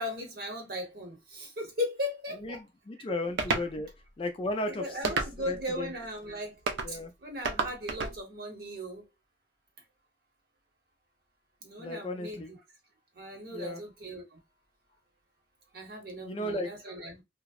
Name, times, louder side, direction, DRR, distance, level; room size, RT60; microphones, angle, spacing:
voice 1, 0.0-2.6 4.7-6.5 6.9-9.0 11.6-12.6 13.1-14.4 15.7-17.2, left 1 dB, 50° right, 0.8 m, -37 dB
voice 2, 2.4-3.9 4.2-5.1 5.5-5.9 6.8-7.1 11.8-12.5 13.5-13.8 16.2-16.7, left 1 dB, 30° left, 0.3 m, -35 dB
sound 1, 3.4-3.7 5.0-5.6 6.7-6.9 7.4-8.2, right 4 dB, 70° right, 0.4 m, -30 dB
2.6 x 2.0 x 2.3 m
head